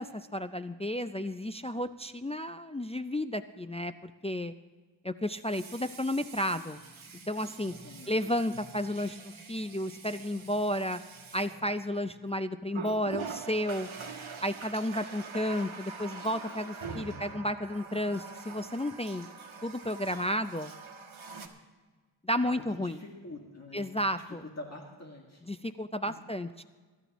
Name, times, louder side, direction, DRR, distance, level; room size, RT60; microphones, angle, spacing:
voice 1, 0.0-4.5 5.0-6.8 7.3-7.7 8.1-11.0 11.3-13.9 14.4-19.3 19.6-20.7 22.3-23.0 23.7-24.4 25.5-26.6, left 1 dB, 15° left, 9 dB, 0.3 m, -32 dB
Water tap faucet, 1.8-1.9 5.3-12.2 12.7-21.5, right 5 dB, 85° right, 1.4 m, -45 dB
voice 2, 7.8-8.1 16.8-17.4 22.4-25.4 26.0-26.2, left 2 dB, 35° left, -1 dB, 1.9 m, -46 dB
23.0 x 12.0 x 3.0 m, 1.4 s
wide cardioid pair, 90°, 47 cm